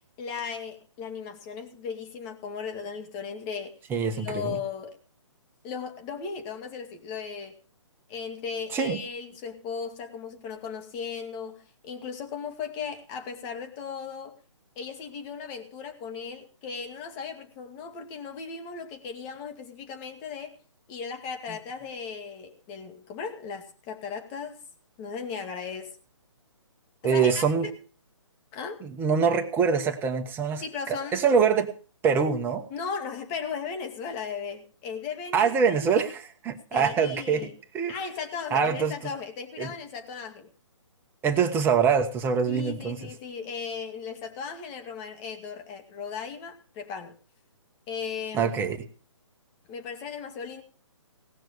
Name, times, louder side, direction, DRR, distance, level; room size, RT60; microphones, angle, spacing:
voice 1, 0.2-3.8 4.1-5.0 5.6-7.6 8.1-14.4 14.8-20.6 20.9-24.6 25.0-26.0 27.0-27.7 28.5-28.8 30.6-31.3 32.7-35.9 36.7-37.5 37.9-40.5 42.5-47.2 47.9-48.5 49.7-50.6, left 6 dB, 25° left, 5 dB, 2.1 m, -36 dB
voice 2, 3.9-4.6 8.7-9.0 27.0-27.7 28.8-31.7 32.0-32.6 35.3-37.5 37.7-37.9 38.5-39.1 39.6-39.7 41.2-43.0 48.3-48.8, right 6 dB, 15° right, 6 dB, 1.2 m, -24 dB
18.0 x 6.1 x 6.7 m, 0.40 s
figure-of-eight pair, 140°, 16 cm